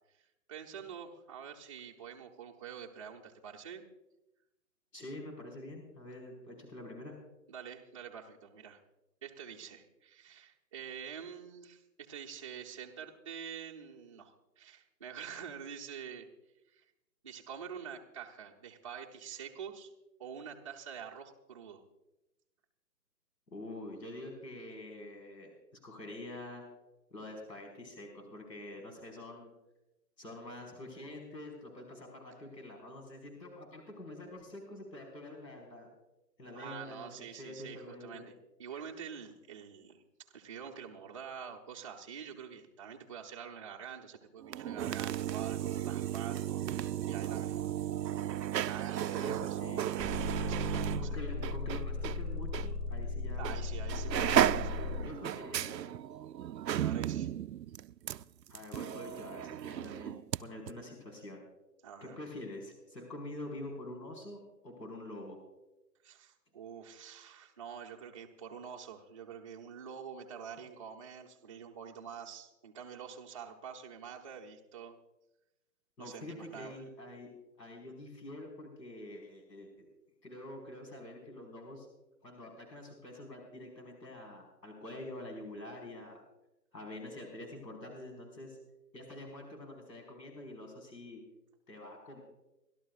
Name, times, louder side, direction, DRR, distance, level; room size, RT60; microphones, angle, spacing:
voice 1, 0.5-3.8 7.5-8.8 9.2-16.3 16.7-16.8 17.2-19.9 20.2-21.8 36.5-38.3 38.6-40.0 40.3-47.7 48.6-49.6 50.4-51.2 53.4-54.7 56.8-57.3 61.8-62.2 66.0-75.0 76.0-76.8, right 7 dB, 20° right, -1 dB, 0.6 m, -46 dB
voice 2, 4.9-7.1 23.5-25.5 25.8-26.6 27.1-29.5 30.2-35.9 36.4-38.3 38.7-38.8 49.0-49.9 50.4-53.7 54.4-55.9 58.5-61.4 62.0-65.4 76.0-77.3 77.6-79.7 80.2-81.9 82.2-86.2 86.7-88.6 88.9-91.2 91.7-92.2, left 1 dB, 80° left, 1 dB, 4.7 m, -46 dB
sound 1, 44.4-52.2 52.5-52.7 53.4-53.6 53.9-60.4 60.7-60.8, right 11 dB, 80° right, 0.6 m, -34 dB
sound 2, 50.0-55.0, left 4 dB, 10° left, 1.3 m, -37 dB
29.5 x 12.0 x 2.4 m, 0.98 s
hypercardioid pair, 145°, 50 cm